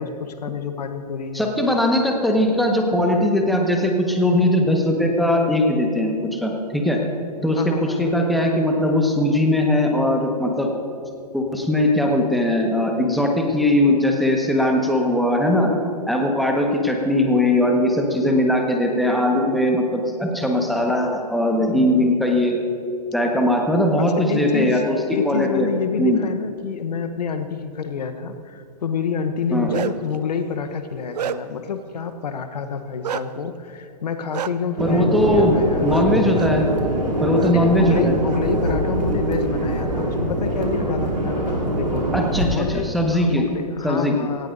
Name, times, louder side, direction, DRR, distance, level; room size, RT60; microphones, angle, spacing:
voice 1, 0.0-1.5 7.5-8.2 24.0-24.8 25.1-36.0 37.5-42.1 42.5-44.5, left 6 dB, 70° left, 8 dB, 1.0 m, -28 dB
voice 2, 1.3-7.0 7.4-10.7 11.3-15.7 16.1-22.6 23.1-25.7 26.0-26.2 29.5-29.8 34.8-35.6 35.8-36.7 37.2-38.1 42.1-43.5 43.8-44.1, left 1 dB, ahead, 1 dB, 1.4 m, -20 dB
Bark, 29.4-30.1 30.7-31.7 33.0-33.2 34.3-34.5 35.9-36.1 36.3-36.5 37.3-37.5 37.9-38.7, right 9 dB, 70° right, 0.6 m, -30 dB
sound 1, 34.8-42.4, right 1 dB, 90° right, 2.9 m, -23 dB
17.5 x 16.5 x 2.7 m, 2.5 s
hypercardioid pair, 120°, 21 cm